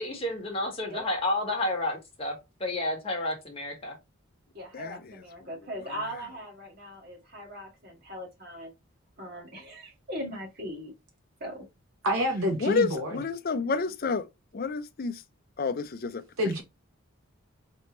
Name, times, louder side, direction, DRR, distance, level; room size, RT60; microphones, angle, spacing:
voice 1, 0.0-4.0, left 1 dB, 25° left, 1.4 m, -31 dB
voice 2, 4.5-8.7 9.2-10.9 11.4-11.6, equal, 45° right, 1.8 m, -39 dB
voice 3, 12.0-13.2 16.4-16.6, equal, 75° right, 1.0 m, -27 dB
voice 4, 12.6-14.2 14.5-15.1 15.6-16.2, left 4 dB, 40° left, 0.4 m, -29 dB
4.1 x 3.4 x 3.0 m
head